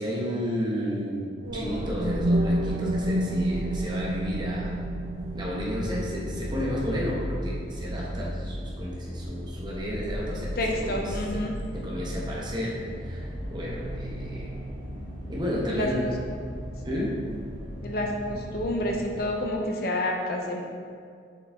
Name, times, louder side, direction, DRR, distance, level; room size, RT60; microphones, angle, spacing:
voice 1, 0.0-4.7 5.3-11.4 11.7-14.5 15.3-16.1 16.8-17.2, equal, 25° right, -4 dB, 1.1 m, -32 dB
sound 1, 1.4-19.3, equal, 45° right, 1.6 m, -36 dB
sound 2, 1.4-9.4, right 1 dB, 70° right, 0.8 m, -31 dB
voice 2, 10.6-11.6 15.7-16.1 17.8-20.6, left 1 dB, 55° left, 1 dB, 0.7 m, -29 dB
6.8 x 5.3 x 3.6 m, 2.2 s
head